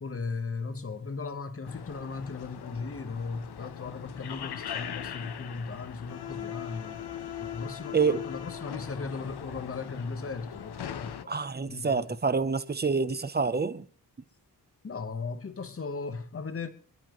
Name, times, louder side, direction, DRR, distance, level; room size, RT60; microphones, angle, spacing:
voice 1, 0.0-7.0 7.4-11.4 11.7-12.2 14.8-16.7, left 4 dB, 35° left, 1.2 m, -37 dB
sound 1, 1.7-11.2, left 9 dB, 75° left, 0.9 m, -40 dB
voice 2, 11.3-13.9, right 5 dB, 25° right, 0.7 m, -27 dB
27.0 x 11.5 x 3.1 m
wide cardioid pair, 170°, 39 cm